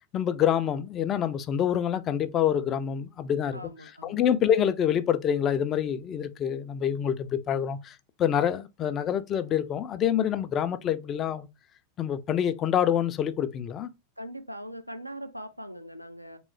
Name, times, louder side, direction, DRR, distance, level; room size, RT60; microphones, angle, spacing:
voice 1, 0.1-3.6 4.0-11.5 12.0-13.9, left 9 dB, 30° left, 0.4 m, -26 dB
voice 2, 3.5-4.3 14.2-16.4, equal, 90° right, 0.4 m, -41 dB
3.6 x 3.1 x 3.1 m
figure-of-eight pair, 90°, 0 cm